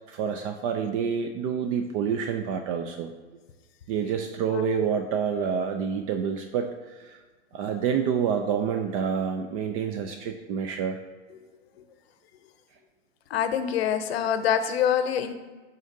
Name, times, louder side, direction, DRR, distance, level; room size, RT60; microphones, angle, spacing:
voice 1, 0.1-3.1 3.9-7.2 7.5-11.0, right 7 dB, 35° right, 5 dB, 0.4 m, -28 dB
voice 2, 13.3-15.3, left 8 dB, 65° left, 10 dB, 0.7 m, -25 dB
10.5 x 3.8 x 2.7 m, 1.3 s
hypercardioid pair, 115°, 34 cm